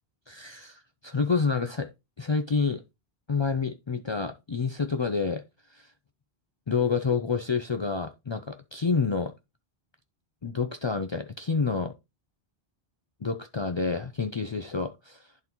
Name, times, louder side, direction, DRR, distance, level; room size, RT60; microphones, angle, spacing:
voice 1, 0.3-1.9 2.2-2.8 3.3-5.4 5.7-5.9 6.7-9.3 10.4-11.9 13.2-15.3, left 5 dB, 50° left, 0.3 m, -28 dB
10.5 x 4.0 x 2.9 m
omnidirectional pair, 1.1 m